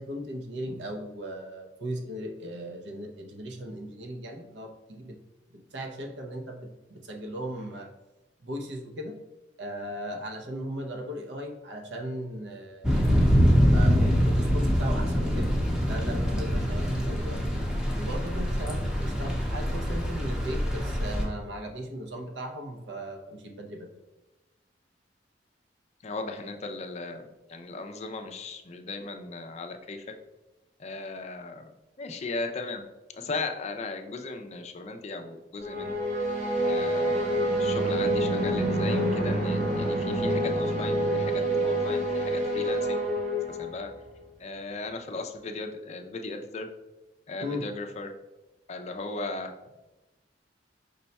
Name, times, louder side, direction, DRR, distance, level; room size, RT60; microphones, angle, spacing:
voice 1, 0.0-5.2 5.5-7.9 8.4-9.1 9.6-13.1 13.6-15.5 15.8-17.5 18.0-23.9 47.4-47.7, equal, 80° right, 3 dB, 0.7 m, -37 dB
Thunder / Rain, 12.8-21.2, equal, 5° right, 0.7 m, -24 dB
voice 2, 26.0-30.0 30.8-31.6 32.0-32.8 33.2-35.9 36.7-43.0 43.6-43.9 44.4-46.7 47.3-48.1 48.7-49.5, left 3 dB, 40° left, 6 dB, 0.4 m, -37 dB
sound 1, 35.6-44.0, right 1 dB, 45° right, 1.1 m, -27 dB
5.3 x 2.2 x 4.0 m, 1.0 s
head